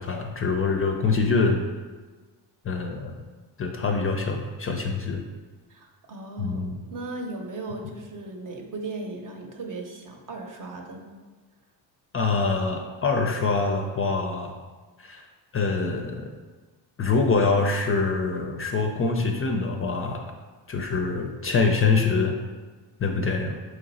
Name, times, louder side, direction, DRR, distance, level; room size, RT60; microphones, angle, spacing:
voice 1, 0.0-1.7 2.6-3.2 3.6-5.2 6.4-6.8 12.1-14.5 15.0-15.2 15.5-16.3 17.0-20.2 20.7-22.3 23.0-23.6, left 4 dB, 30° left, 3 dB, 0.4 m, -25 dB
voice 2, 5.7-11.1, right 2 dB, 45° right, 2 dB, 0.8 m, -37 dB
3.9 x 3.2 x 4.0 m, 1.3 s
cardioid pair, 90°, 43 cm